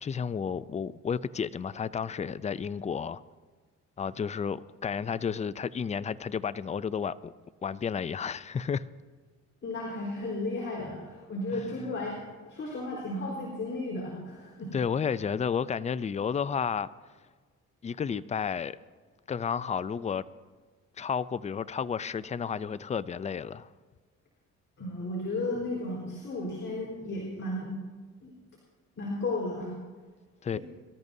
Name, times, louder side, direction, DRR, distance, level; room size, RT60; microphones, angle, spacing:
voice 1, 0.0-3.2 4.0-7.3 7.6-8.9 14.7-16.9 17.8-18.8 19.3-20.2 21.0-23.7 30.4-30.6, left 6 dB, 25° left, 0.4 m, -32 dB
voice 2, 9.6-12.2 12.5-14.7 24.8-27.7 28.2-28.3 29.0-29.7 30.5-30.6, left 2 dB, 45° left, 4.4 m, -34 dB
24.0 x 13.5 x 2.7 m
cardioid pair, 90°, 30 cm